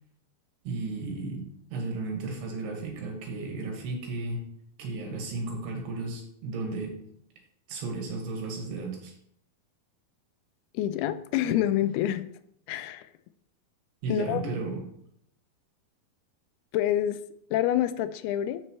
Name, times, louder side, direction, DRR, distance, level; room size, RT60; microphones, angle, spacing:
voice 1, 0.7-4.5 4.8-7.0 7.7-9.1 14.0-14.9, right 3 dB, 85° right, 1 dB, 3.7 m, -34 dB
voice 2, 10.7-12.3 12.7-13.1 14.1-14.6 16.7-17.2 17.5-18.6, left 12 dB, 85° left, 12 dB, 2.4 m, -27 dB
12.0 x 5.5 x 3.1 m, 0.72 s
omnidirectional pair, 4.6 m